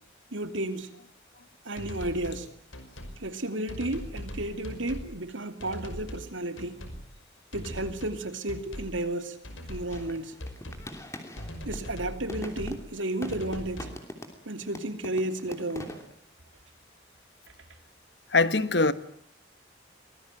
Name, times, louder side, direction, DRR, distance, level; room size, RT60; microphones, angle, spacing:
voice 1, 0.3-0.9 1.6-2.5 3.2-6.8 7.5-9.4 9.7-10.4 11.6-13.9 14.5-16.0, right 1 dB, 80° right, 2.8 m, -33 dB
sound 1, 1.8-2.4 2.7-3.2 3.7-5.1 5.6-6.3 6.6-7.0 7.5-8.2 8.5-9.0 9.4-10.1 10.4-10.9 11.4-12.8 13.3-14.0, equal, 90° left, 5.6 m, -40 dB
sound 2, 9.9-11.9 12.3-14.5 14.8-16.1, left 1 dB, 15° left, 3.0 m, -42 dB
voice 2, 18.3-18.9, left 3 dB, 60° left, 1.4 m, -22 dB
25.0 x 19.5 x 9.0 m
head